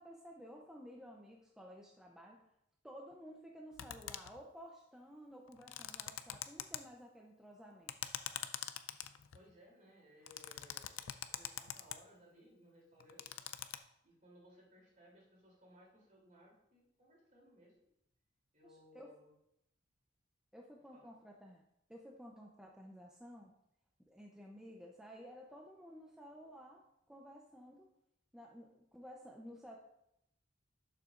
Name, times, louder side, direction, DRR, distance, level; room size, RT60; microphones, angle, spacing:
voice 1, 0.0-2.5 2.8-8.0 18.6-19.1 20.5-21.6 21.9-23.5 24.1-27.9 28.3-29.8, equal, 5° right, -1 dB, 0.6 m, -54 dB
sound 1, 3.8-4.4 5.5-6.8 7.9-9.5 10.3-12.0 13.0-13.8, left 11 dB, 80° left, 0.5 m, -43 dB
voice 2, 9.3-13.4 14.0-17.7 18.5-19.3 20.9-21.1, equal, 40° right, -3 dB, 3.1 m, -63 dB
11.5 x 6.8 x 2.5 m, 0.80 s
head